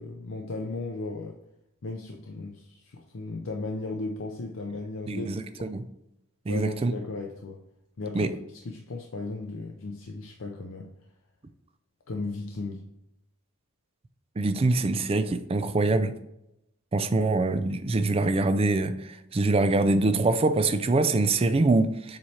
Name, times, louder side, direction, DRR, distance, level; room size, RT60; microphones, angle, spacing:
voice 1, 0.0-1.4 1.8-5.3 5.6-5.7 6.5-7.6 8.0-10.9 12.1-12.8 17.1-17.3, left 3 dB, 60° left, 0.6 m, -36 dB
voice 2, 5.1-5.8 6.5-6.9 8.1-8.3 14.4-16.2 16.9-22.2, right 2 dB, 25° right, 0.3 m, -24 dB
7.3 x 3.2 x 4.2 m
head